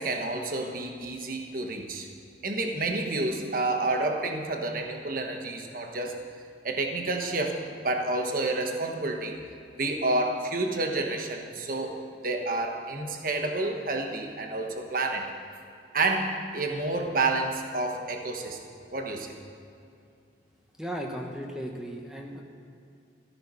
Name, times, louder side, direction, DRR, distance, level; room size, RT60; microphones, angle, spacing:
voice 1, 0.0-2.1 2.4-6.2 6.6-7.6 7.8-9.4 9.8-12.0 12.2-15.3 15.9-18.6 18.9-19.4, right 2 dB, 45° right, 3 dB, 1.2 m, -29 dB
voice 2, 20.8-22.4, equal, 5° right, 1 dB, 1.3 m, -36 dB
14.0 x 13.5 x 5.6 m, 2.5 s
head